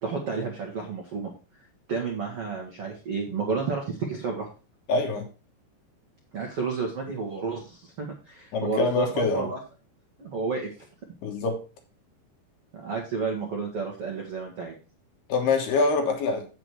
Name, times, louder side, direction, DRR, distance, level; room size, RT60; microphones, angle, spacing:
voice 1, 0.0-1.3 1.9-4.5 6.3-9.6 10.2-10.7 12.7-14.7, right 4 dB, 75° right, 1.3 m, -31 dB
voice 2, 4.9-5.3 8.5-9.5 11.2-11.6 15.3-16.5, left 3 dB, 65° left, 3.0 m, -25 dB
8.4 x 7.4 x 4.6 m
omnidirectional pair, 5.4 m